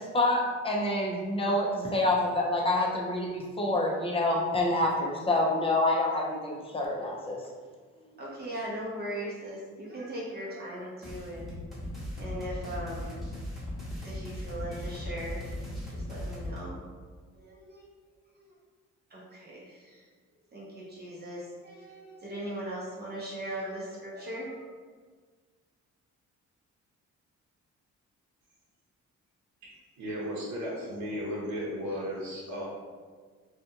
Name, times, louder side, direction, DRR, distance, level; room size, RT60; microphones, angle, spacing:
voice 1, 0.0-7.4, left 2 dB, 20° left, -1 dB, 0.5 m, -27 dB
voice 2, 7.9-11.5 12.1-13.2 14.0-15.5 15.9-16.8 17.3-17.9 18.4-18.5 19.1-20.0 20.5-24.6, right 1 dB, 35° right, -5 dB, 0.7 m, -39 dB
sound 1, 11.0-16.6, left 1 dB, ahead, 1.0 m, -38 dB
voice 3, 30.0-32.6, equal, 75° right, -7 dB, 0.8 m, -35 dB
2.5 x 2.3 x 2.8 m, 1.5 s
cardioid pair, 90°, 30 cm